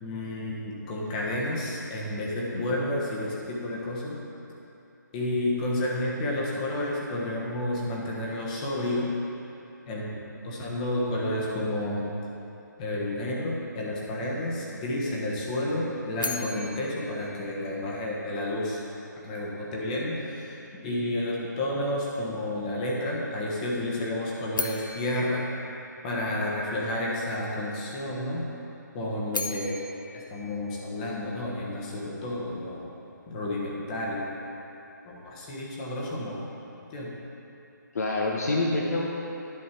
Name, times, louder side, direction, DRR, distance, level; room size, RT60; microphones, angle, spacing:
voice 1, 0.0-4.2 5.1-9.1 9.9-10.1 10.4-12.1 12.8-18.8 19.2-20.6 20.8-25.4 26.0-28.5 28.9-29.8 30.1-32.8 33.3-34.3 35.0-36.5 36.9-37.1, left 1 dB, 20° left, -4 dB, 1.2 m, -30 dB
sound 1, 16.2-18.3 24.5-26.7 29.0-31.5, left 3 dB, 90° left, 0.8 m, -38 dB
voice 2, 37.9-39.1, left 2 dB, 55° left, -2 dB, 0.9 m, -27 dB
11.0 x 5.5 x 4.5 m, 2.9 s
hypercardioid pair, 160°, 10 cm